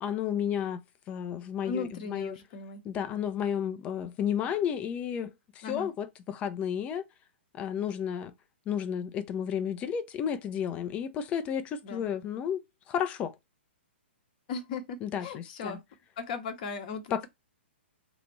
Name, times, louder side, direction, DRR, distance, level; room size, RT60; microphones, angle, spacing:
voice 1, 0.0-2.4 2.8-7.0 7.5-8.3 8.7-12.6 12.9-13.3 15.0-15.8 17.1-17.3, left 8 dB, 20° left, 0.5 m, -32 dB
voice 2, 1.6-2.8 5.6-5.9 11.8-12.0 14.5-15.8 16.2-17.3, left 4 dB, 40° left, 0.9 m, -37 dB
3.9 x 2.5 x 3.0 m
figure-of-eight pair, 120°, 6 cm